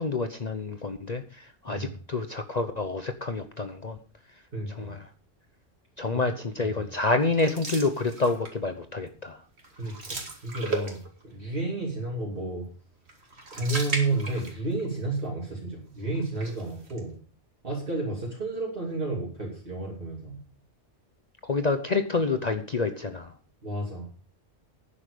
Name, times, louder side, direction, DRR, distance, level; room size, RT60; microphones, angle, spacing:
voice 1, 0.0-4.0 4.8-5.1 6.0-9.4 21.4-23.3, left 3 dB, 40° left, 8 dB, 0.9 m, -28 dB
voice 2, 4.5-4.9 6.1-6.8 9.8-12.7 13.5-17.1 17.6-20.4 23.6-24.1, right 2 dB, 50° right, -3 dB, 3.0 m, -31 dB
sound 1, 7.3-8.7 9.1-9.3 9.6-11.3 13.1-14.9 15.2-15.3 16.1-17.0, right 2 dB, 65° right, 2.5 m, -36 dB
11.5 x 9.9 x 5.1 m, 0.42 s
omnidirectional pair, 1.2 m